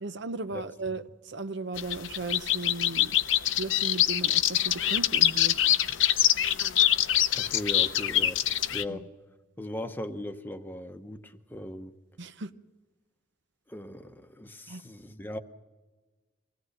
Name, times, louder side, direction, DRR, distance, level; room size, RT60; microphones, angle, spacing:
voice 1, 0.0-3.2 3.6-5.7 8.9-9.0 12.2-12.5 14.7-14.8, right 3 dB, 60° right, 11 dB, 0.8 m, -36 dB
voice 2, 0.5-1.0 7.3-8.4 8.7-9.1 9.6-11.9 13.7-15.4, left 1 dB, 10° left, 8 dB, 0.9 m, -38 dB
sound 1, 1.8-8.8, left 12 dB, 75° left, 0.7 m, -24 dB
24.5 x 17.0 x 6.7 m, 1.3 s
head